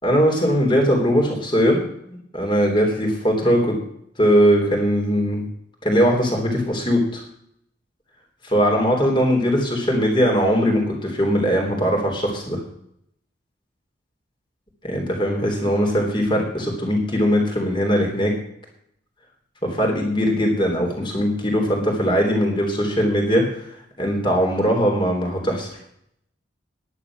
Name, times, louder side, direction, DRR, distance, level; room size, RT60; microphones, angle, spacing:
voice 1, 0.0-1.8 2.1-3.8 4.2-5.5 5.8-7.2 8.4-12.6 14.8-18.3 19.6-23.6 24.0-25.7, equal, 25° left, 1 dB, 3.5 m, -20 dB
11.0 x 10.0 x 6.2 m, 0.71 s
head